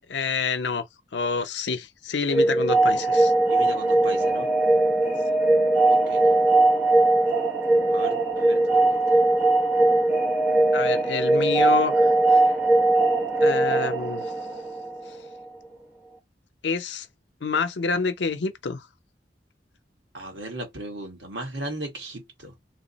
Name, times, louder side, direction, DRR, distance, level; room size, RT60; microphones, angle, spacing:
voice 1, 0.1-0.8 1.1-3.3 10.7-12.5 13.4-14.3 16.6-17.1 17.4-18.9, left 4 dB, 80° left, 0.6 m, -27 dB
sound 1, 2.3-15.1, right 2 dB, 15° right, 1.0 m, -20 dB
voice 2, 3.5-4.5 5.9-6.3 7.9-9.0 20.1-22.5, right 1 dB, 80° right, 1.6 m, -37 dB
3.3 x 2.0 x 4.0 m
head